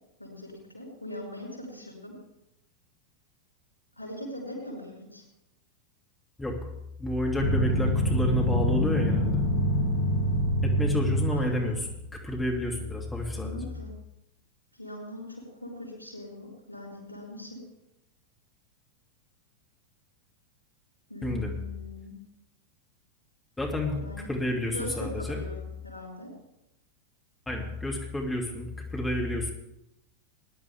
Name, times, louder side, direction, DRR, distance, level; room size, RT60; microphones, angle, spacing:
voice 1, 0.2-2.2 4.0-5.2 11.3-11.7 13.3-13.9 14.8-17.6 21.1-22.1 24.0-24.3 24.7-26.3, left 1 dB, 85° right, -2 dB, 5.4 m, -41 dB
voice 2, 7.0-9.4 10.6-11.9 12.1-13.6 21.2-21.5 23.6-24.0 24.3-25.4 27.5-29.5, left 1 dB, 10° left, 0 dB, 2.4 m, -30 dB
sound 1, 7.4-11.9, equal, 65° left, 2.3 m, -26 dB
19.5 x 10.5 x 3.5 m, 0.87 s
figure-of-eight pair, 90°, 0 cm